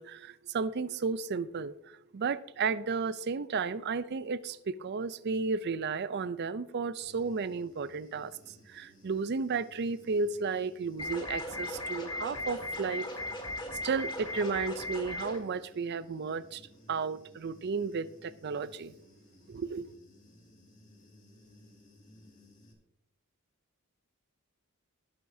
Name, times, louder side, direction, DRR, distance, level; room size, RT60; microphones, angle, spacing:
voice 1, 0.0-13.1 13.8-16.6 16.9-18.9 19.5-19.9, right 4 dB, 50° right, 0.5 m, -33 dB
Human voice / Buzz, 7.0-22.7, left 1 dB, 35° left, 2.1 m, -59 dB
sound 1, 11.0-15.4, left 1 dB, 20° left, 1.8 m, -37 dB
19.5 x 7.8 x 2.7 m
head